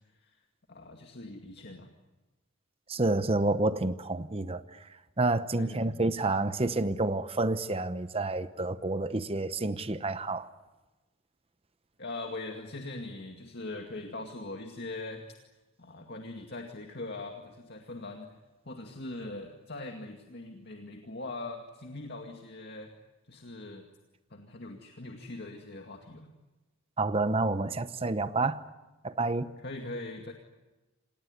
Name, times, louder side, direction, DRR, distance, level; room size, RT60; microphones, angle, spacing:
voice 1, 0.7-1.9 5.6-6.0 12.0-15.2 15.8-18.4 18.6-22.9 23.3-23.9 24.3-26.3 29.6-30.3, left 2 dB, 50° left, 2.2 m, -41 dB
voice 2, 2.9-4.6 5.2-10.5 27.0-28.6 29.0-29.5, right 2 dB, 25° right, 0.9 m, -29 dB
27.5 x 19.5 x 9.6 m
head